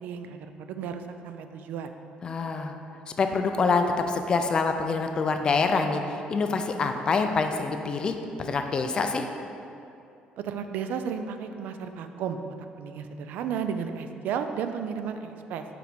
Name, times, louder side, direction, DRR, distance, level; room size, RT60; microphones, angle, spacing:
voice 1, 0.0-1.9 10.4-12.4 12.8-15.7, right 7 dB, 70° right, 8 dB, 0.4 m, -33 dB
voice 2, 2.2-2.7 3.2-9.2, left 4 dB, 30° left, 6 dB, 0.4 m, -26 dB
4.9 x 4.6 x 5.1 m, 2.7 s
cardioid pair, 170°, 3 cm